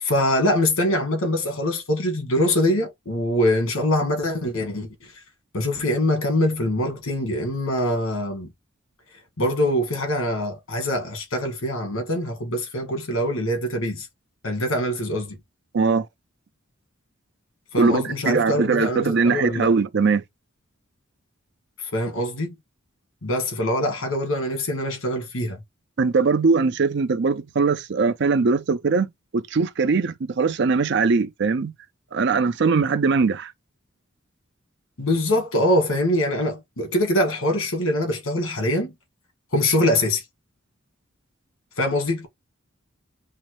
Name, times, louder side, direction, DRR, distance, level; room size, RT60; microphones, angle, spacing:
voice 1, 0.0-4.9 5.5-8.5 9.4-14.1 14.4-15.4 17.7-19.7 21.9-22.5 23.2-25.6 35.0-38.9 39.5-40.2 41.8-42.3, left 1 dB, 90° left, 1.6 m, -23 dB
voice 2, 15.7-16.1 17.8-20.2 26.0-29.1 29.3-31.7 32.1-33.5, right 4 dB, 55° right, 0.5 m, -21 dB
5.5 x 2.0 x 3.0 m
head